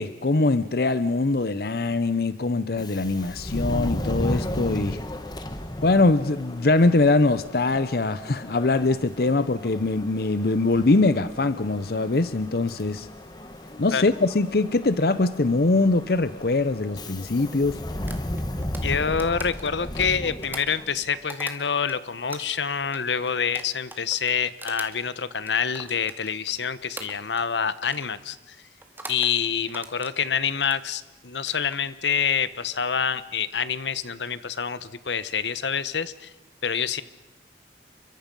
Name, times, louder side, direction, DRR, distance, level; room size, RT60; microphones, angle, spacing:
voice 1, 0.0-5.0 5.8-13.1 13.8-17.8, left 3 dB, 60° left, 14 dB, 0.8 m, -22 dB
Subway metro underground, 2.8-21.1, left 1 dB, 25° left, 1.4 m, -35 dB
sound 1, 18.1-22.0 22.3-26.6 27.0-27.5 27.8-28.1 28.8-29.3 29.7-30.8 31.3-31.8, right 2 dB, 10° right, 2.1 m, -42 dB
voice 2, 18.8-28.6 29.1-36.3 36.6-37.0, left 6 dB, 85° left, 15 dB, 1.0 m, -27 dB
29.5 x 24.0 x 5.4 m, 0.99 s
head